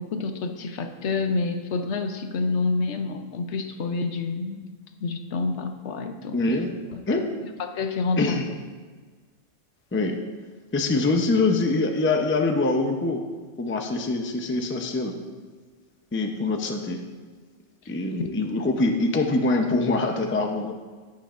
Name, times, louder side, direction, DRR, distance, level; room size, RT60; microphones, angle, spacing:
voice 1, 0.0-4.6 5.0-6.4 6.9-7.0 7.4-8.4 18.2-18.3, left 4 dB, 70° left, 6 dB, 1.0 m, -28 dB
voice 2, 6.3-6.8 7.1-7.2 8.2-8.5 9.9-10.2 10.7-13.2 13.6-15.1 16.1-17.0 17.9-20.7, left 3 dB, 15° left, 3 dB, 0.5 m, -24 dB
16.5 x 5.8 x 2.5 m, 1.4 s
omnidirectional pair, 1.3 m